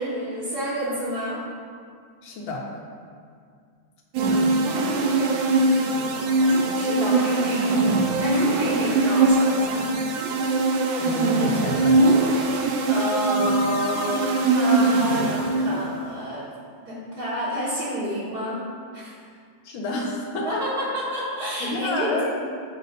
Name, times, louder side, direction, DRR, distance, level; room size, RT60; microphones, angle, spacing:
voice 1, 0.0-1.4 4.9-5.5 6.1-9.9 12.8-16.5 16.9-18.6 18.9-19.2 20.4-22.3, equal, 55° right, -9 dB, 1.9 m, -29 dB
voice 2, 2.2-2.6 11.0-12.2 19.6-20.6 21.6-22.3, left 2 dB, 75° left, -2 dB, 1.9 m, -29 dB
sound 1, 4.1-15.9, right 2 dB, 80° right, 1.4 m, -21 dB
8.5 x 4.1 x 5.3 m, 2.1 s
omnidirectional pair, 2.2 m